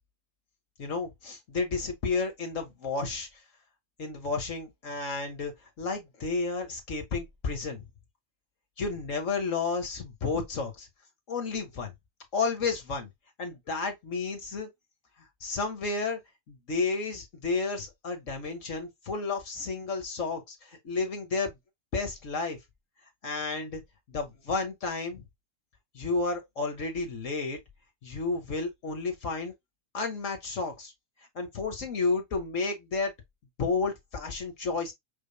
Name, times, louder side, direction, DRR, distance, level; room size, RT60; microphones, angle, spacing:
voice 1, 0.8-3.3 4.0-7.8 8.8-10.9 11.3-11.9 12.3-13.1 13.4-14.7 15.2-16.2 16.5-21.6 21.9-22.6 23.2-23.8 24.1-25.2 25.9-27.6 28.0-29.5 29.9-30.9 31.4-33.1 33.6-34.9, left 4 dB, 45° left, 1.6 m, -31 dB
5.1 x 3.4 x 2.2 m
figure-of-eight pair, 90°, 0 cm